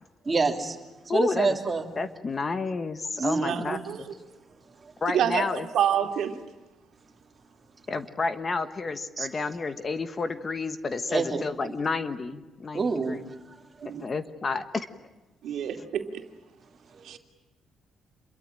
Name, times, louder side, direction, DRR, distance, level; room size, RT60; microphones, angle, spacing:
voice 1, 0.2-0.8 1.0-1.9 3.2-3.8 4.8-4.9 9.2-9.3 11.1-11.4 12.7-13.9 16.9-17.2, right 4 dB, 20° right, 3 dB, 3.1 m, -28 dB
voice 2, 1.1-1.6 2.0-3.8 5.0-5.7 7.9-13.3 14.0-14.9, left 4 dB, 25° left, 10 dB, 1.2 m, -30 dB
voice 3, 3.4-4.1 5.1-5.5 5.7-6.4 13.8-14.0 15.4-16.2 17.0-17.2, right 9 dB, 65° right, 5 dB, 2.7 m, -27 dB
28.0 x 23.0 x 8.9 m, 1.1 s
cardioid pair, 160°, 0 cm